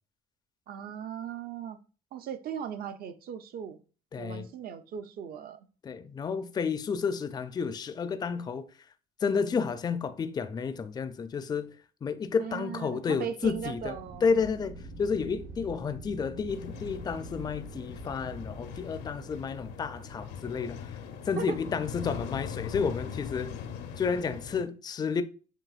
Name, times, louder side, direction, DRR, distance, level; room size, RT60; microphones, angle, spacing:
voice 1, 0.7-1.8 2.1-3.8 4.2-5.6 6.2-6.3 12.4-14.5 21.4-21.6, right 8 dB, 60° right, 0.6 m, -38 dB
voice 2, 4.1-4.5 5.8-8.7 9.2-11.7 12.0-13.9 14.2-21.0 21.2-23.6 24.0-25.2, left 5 dB, 25° left, 0.4 m, -31 dB
Wind, 13.4-20.4, right 2 dB, 80° right, 1.3 m, -46 dB
sound 1, 16.5-24.6, left 7 dB, 80° left, 0.7 m, -41 dB
7.5 x 3.0 x 2.4 m
cardioid pair, 95°, 17 cm